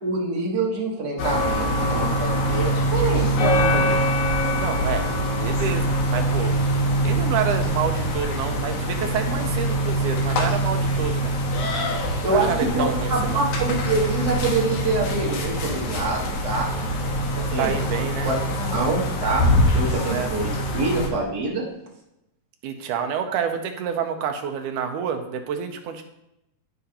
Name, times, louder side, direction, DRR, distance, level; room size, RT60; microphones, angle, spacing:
voice 1, 0.0-4.0 12.2-16.8 17.3-17.8 18.2-18.4 18.7-19.5 19.7-21.7, right 3 dB, 60° right, -3 dB, 1.0 m, -26 dB
sound 1, 1.2-21.1, equal, 65° left, 2.4 m, -23 dB
voice 2, 4.6-5.1 5.4-6.6 7.0-11.4 12.3-13.4 17.6-18.3 20.1-20.3 22.6-26.0, right 7 dB, 75° right, 5 dB, 2.0 m, -28 dB
14.5 x 4.9 x 2.9 m, 0.86 s
omnidirectional pair, 4.0 m